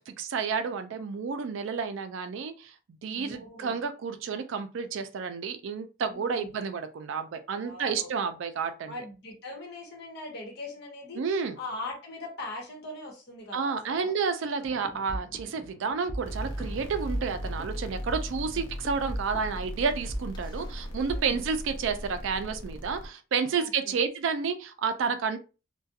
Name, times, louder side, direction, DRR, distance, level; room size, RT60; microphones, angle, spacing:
voice 1, 0.0-2.7 3.0-8.9 11.2-11.6 13.5-25.4, right 5 dB, 70° right, 0.3 m, -30 dB
voice 2, 3.1-3.8 6.0-6.5 7.5-8.1 8.9-11.2 11.6-14.1 18.5-18.6 21.1-21.4 23.5-24.0, left 2 dB, 50° left, 1.0 m, -41 dB
sound 1, 14.6-21.2, equal, 20° left, 0.4 m, -39 dB
sound 2, 16.2-23.1, equal, 85° left, 0.6 m, -38 dB
2.4 x 2.2 x 2.6 m
head